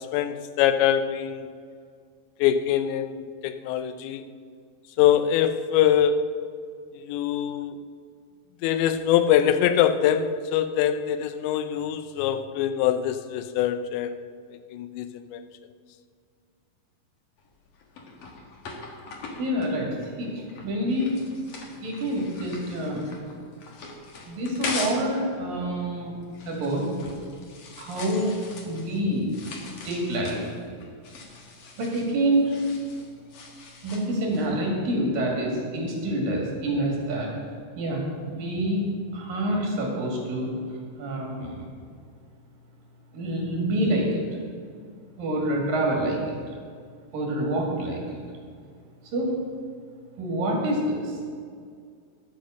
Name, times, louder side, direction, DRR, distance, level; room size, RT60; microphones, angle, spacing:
voice 1, 0.0-1.5 2.4-4.2 5.0-6.3 6.9-7.8 8.6-14.2 14.7-15.4, left 10 dB, 85° left, 10 dB, 2.9 m, -23 dB
sound 1, 17.4-25.1 25.4-34.5, left 3 dB, 65° left, 1.5 m, -41 dB
voice 2, 19.4-21.2 21.8-23.1 24.3-26.2 26.5-26.9 27.7-28.4 28.6-29.3 29.9-30.5 31.8-32.7 33.8-37.3 37.8-38.0 38.3-38.9 39.1-41.7 43.1-44.2 45.2-46.5 47.1-48.2 49.0-49.4 50.2-51.2, right 1 dB, 55° right, -1 dB, 3.6 m, -27 dB
11.5 x 8.0 x 6.4 m, 2.1 s
omnidirectional pair, 5.1 m